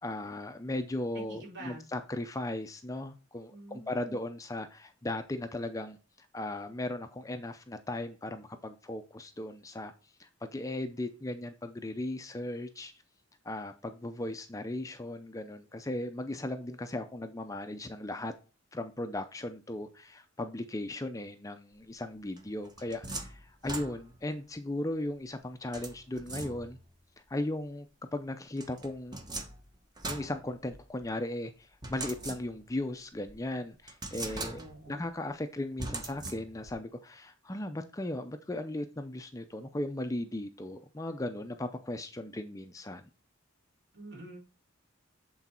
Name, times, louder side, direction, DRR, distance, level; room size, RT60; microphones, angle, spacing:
voice 1, 0.0-6.0 6.3-9.9 10.2-12.9 13.4-18.3 18.7-26.8 27.3-29.2 30.0-34.6 34.9-43.0, left 1 dB, 15° left, 8 dB, 0.5 m, -37 dB
voice 2, 1.1-1.8 3.5-4.2 34.3-35.0 43.9-44.4, right 2 dB, 55° right, -2 dB, 3.6 m, -47 dB
sound 1, 22.4-24.3 25.7-26.9 28.6-31.1 31.8-32.8 33.3-33.4 33.9-35.0 35.8-36.8, right 2 dB, 20° right, 0.9 m, -41 dB
8.2 x 4.0 x 4.3 m, 0.33 s
head